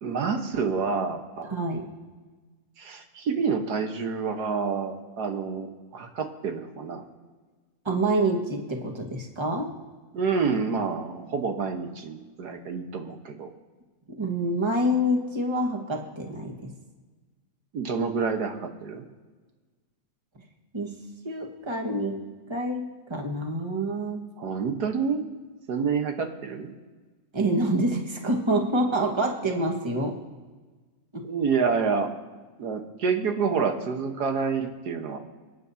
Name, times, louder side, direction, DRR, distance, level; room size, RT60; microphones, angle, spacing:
voice 1, 0.0-1.5 2.8-7.0 10.1-13.5 17.7-19.0 24.4-25.2 25.7-26.7 31.2-32.1 32.6-35.2, right 5 dB, 90° right, 5 dB, 1.8 m, -28 dB
voice 2, 1.4-1.9 7.8-9.7 14.2-16.6 20.7-20.9 21.2-22.2 22.5-24.2 27.3-30.2 31.1-31.3, right 1 dB, 20° right, 1 dB, 1.4 m, -27 dB
28.5 x 9.6 x 2.8 m, 1.3 s
omnidirectional pair, 1.7 m